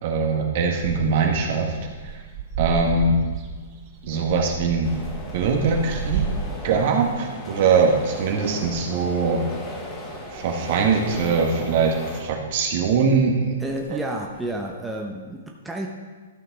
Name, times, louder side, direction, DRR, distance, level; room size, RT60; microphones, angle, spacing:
voice 1, 0.0-1.7 2.6-3.2 4.0-4.9 5.3-6.2 6.6-9.4 10.3-13.6 13.9-14.0, right 5 dB, 50° right, 1 dB, 1.6 m, -22 dB
sound 1, 0.8-14.6, right 5 dB, 35° right, 1.0 m, -35 dB
sound 2, 4.8-12.2, left 1 dB, 20° left, 1.8 m, -37 dB
voice 2, 13.6-15.9, right 1 dB, 5° right, -1 dB, 0.8 m, -31 dB
13.0 x 5.7 x 4.1 m, 1.4 s
hypercardioid pair, 135°, 0 cm